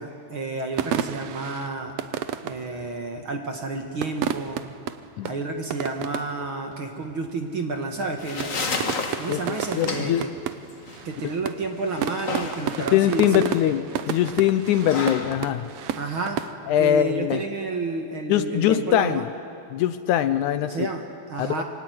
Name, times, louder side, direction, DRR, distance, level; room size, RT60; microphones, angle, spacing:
voice 1, 0.0-1.9 2.4-4.6 5.2-8.8 9.2-10.3 11.0-13.4 16.0-16.4 16.8-19.3 20.7-21.6, right 3 dB, 45° right, 4 dB, 2.0 m, -30 dB
sound 1, 0.7-3.2 3.9-6.5 6.7-6.8 7.0-7.5 7.7-8.1 8.4-16.5, right 9 dB, 70° right, 1.6 m, -32 dB
sound 2, 7.9-16.9, left 4 dB, 35° left, 1.5 m, -34 dB
voice 2, 9.3-10.2 12.9-15.7 16.7-17.4 18.3-19.3 19.7-20.9 21.4-21.6, left 11 dB, 75° left, 11 dB, 2.0 m, -22 dB
26.0 x 23.0 x 9.5 m, 2.4 s
omnidirectional pair, 3.8 m